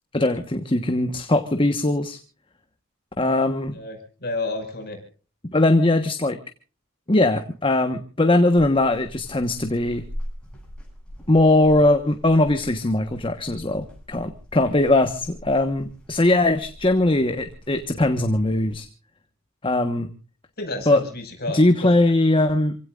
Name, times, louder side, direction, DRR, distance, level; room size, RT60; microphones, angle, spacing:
voice 1, 0.1-2.2 3.2-3.8 5.5-6.4 7.1-10.0 11.3-18.9 19.6-20.1 20.9-21.0 21.5-22.8, left 2 dB, 25° left, 8 dB, 1.2 m, -20 dB
voice 2, 3.8-5.0 20.6-22.0, left 2 dB, 50° left, 5 dB, 5.5 m, -31 dB
sound 1, 8.5-18.8, equal, 5° left, 8.0 m, -42 dB
28.0 x 17.0 x 2.5 m, 0.38 s
head